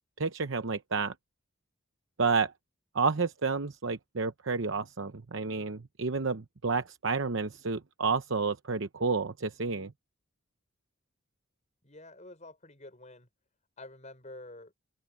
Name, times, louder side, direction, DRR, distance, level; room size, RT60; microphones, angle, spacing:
voice 1, 0.2-1.1 2.2-2.5 2.9-9.9, right 4 dB, 65° right, 0.9 m, -30 dB
voice 2, 11.8-13.3 13.8-14.7, left 2 dB, 35° left, 5.9 m, -48 dB
open air
head